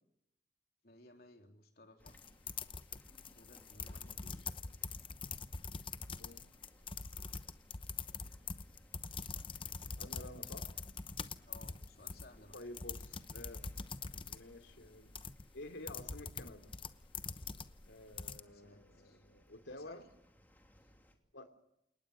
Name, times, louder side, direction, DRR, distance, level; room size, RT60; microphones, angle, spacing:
voice 1, 0.8-2.2 3.3-4.4 11.5-12.6 18.4-19.2 19.7-20.0 20.8-20.9, left 1 dB, 55° left, 4 dB, 3.7 m, -60 dB
sound 1, 2.0-21.1, equal, 10° left, 2.8 m, -66 dB
sound 2, 2.1-18.4, left 5 dB, 30° left, 0.9 m, -44 dB
voice 2, 10.0-10.7 12.5-13.7 14.3-15.1 15.5-16.7 17.9-20.1 21.3-21.5, left 1 dB, 85° left, 8 dB, 3.0 m, -51 dB
29.0 x 19.5 x 6.8 m, 0.79 s
head